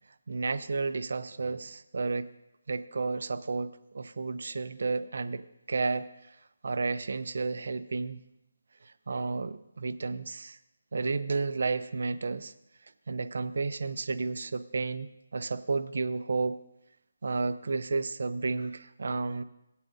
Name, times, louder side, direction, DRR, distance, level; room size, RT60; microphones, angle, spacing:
voice 1, 0.3-2.3 2.7-3.7 3.9-5.4 5.7-6.1 6.6-8.2 9.1-10.5 10.9-12.5 13.1-15.1 15.3-16.6 17.2-19.4, right 4 dB, 60° right, 11 dB, 0.5 m, -31 dB
18.0 x 8.4 x 2.6 m, 0.87 s
figure-of-eight pair, 150°, 0 cm